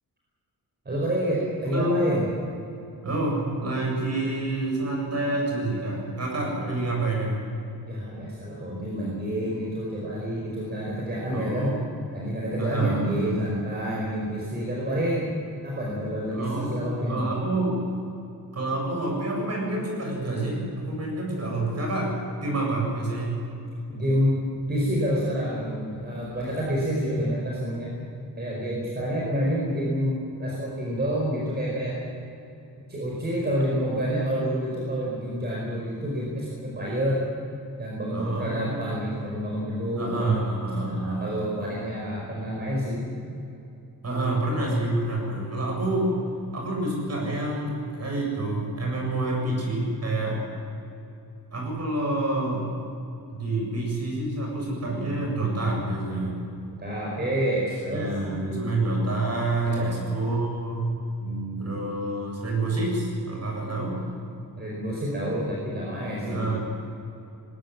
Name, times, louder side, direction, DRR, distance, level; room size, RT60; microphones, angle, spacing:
voice 1, 0.8-2.2 7.8-11.8 12.1-15.3 15.6-17.3 23.9-27.9 28.4-31.9 32.9-37.3 37.8-40.3 40.9-43.1 56.8-58.1 59.6-59.9 61.2-61.7 64.6-66.6, equal, 25° right, -4 dB, 5.0 m, -28 dB
voice 2, 1.7-2.1 3.0-7.4 11.3-11.8 12.6-13.4 16.3-17.8 18.5-22.1 22.4-23.4 38.1-39.1 40.0-41.4 44.0-46.1 46.5-50.4 51.5-52.7 53.3-56.4 57.9-60.9 61.6-64.0 66.2-66.6, right 2 dB, 40° right, 0 dB, 7.6 m, -28 dB
20.5 x 18.0 x 9.6 m, 2.7 s
wide cardioid pair, 170°, 38 cm